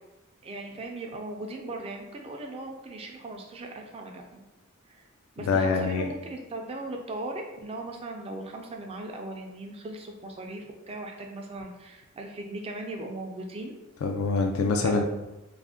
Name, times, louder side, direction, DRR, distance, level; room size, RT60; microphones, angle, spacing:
voice 1, 0.4-4.5 4.9-5.0 5.4-13.7 14.8-15.0, right 2 dB, 30° right, 2 dB, 0.3 m, -38 dB
voice 2, 5.5-6.1 14.0-15.0, left 4 dB, 80° left, 3 dB, 0.3 m, -25 dB
2.5 x 2.1 x 3.5 m, 1.0 s
head